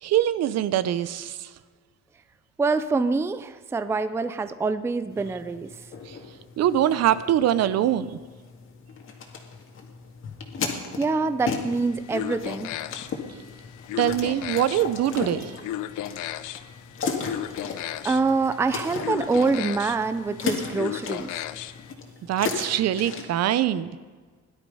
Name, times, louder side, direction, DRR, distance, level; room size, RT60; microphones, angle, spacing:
voice 1, 0.0-1.5 6.1-6.2 6.6-8.2 14.0-15.6 22.3-23.9, right 11 dB, 55° right, 15 dB, 0.7 m, -23 dB
voice 2, 2.6-5.7 11.0-12.7 18.0-21.3, right 4 dB, 10° right, 11 dB, 0.4 m, -25 dB
sound 1, 5.1-23.3, left 5 dB, 40° left, 2.1 m, -36 dB
sound 2, 11.7-21.9, left 12 dB, 80° left, 0.7 m, -36 dB
17.0 x 11.5 x 5.5 m, 1.5 s
cardioid pair, 155°, 30 cm